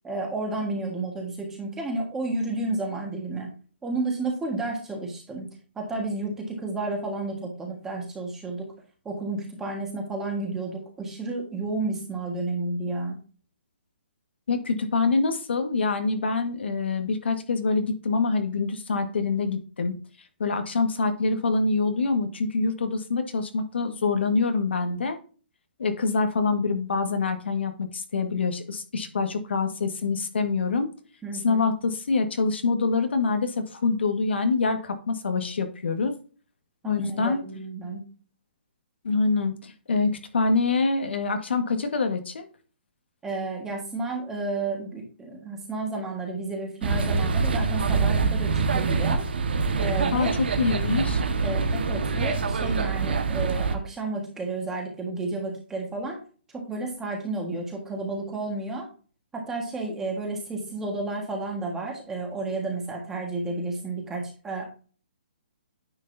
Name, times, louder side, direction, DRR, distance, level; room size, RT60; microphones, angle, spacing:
voice 1, 0.0-3.5 3.8-5.5 5.7-8.7 9.0-13.2 31.2-31.7 36.8-38.0 43.2-49.2 49.8-50.3 51.4-56.2 56.5-58.9 59.3-64.7, right 2 dB, 5° right, 1 dB, 1.7 m, -31 dB
voice 2, 14.5-20.0 20.4-25.2 25.8-30.9 31.4-36.1 36.8-37.4 39.0-42.4 50.1-51.2, left 4 dB, 80° left, 7 dB, 1.7 m, -25 dB
sound 1, 46.8-53.8, right 4 dB, 70° right, 1.5 m, -25 dB
9.7 x 6.6 x 2.7 m, 0.38 s
hypercardioid pair, 170°, 6 cm